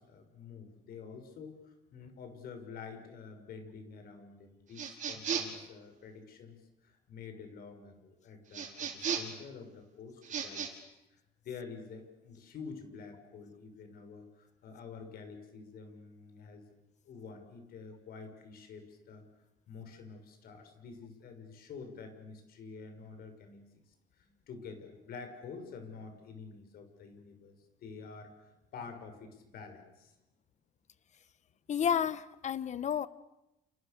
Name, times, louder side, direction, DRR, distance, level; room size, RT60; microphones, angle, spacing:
voice 1, 0.0-10.8 11.1-16.6 17.0-19.2 19.7-23.6 24.1-27.5 27.8-30.1, left 5 dB, 65° left, 6 dB, 6.4 m, -48 dB
sound 1, 4.7-5.6 8.5-9.4 10.2-10.7, right 7 dB, 45° right, 5.2 m, -35 dB
voice 2, 31.7-33.1, left 8 dB, 45° left, 16 dB, 1.3 m, -31 dB
30.0 x 28.5 x 6.9 m, 0.91 s
cardioid pair, 110°, 17 cm